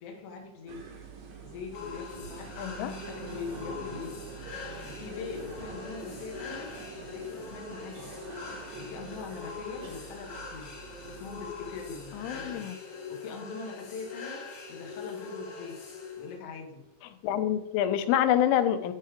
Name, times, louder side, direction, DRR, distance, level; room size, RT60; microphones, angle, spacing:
voice 1, 0.0-0.8 1.4-4.2 4.8-6.7 7.1-8.1 8.7-10.7 11.1-15.8 16.1-16.8, left 5 dB, 65° left, 1 dB, 1.5 m, -42 dB
sound 1, 0.7-12.5, right 5 dB, 85° right, 1.5 m, -46 dB
sound 2, 1.7-16.4, left 5 dB, 50° left, 2.5 m, -42 dB
voice 2, 2.6-2.9 12.1-12.8 17.2-18.9, left 10 dB, 90° left, 10 dB, 3.2 m, -26 dB
10.5 x 5.6 x 5.0 m, 0.93 s
omnidirectional pair, 5.4 m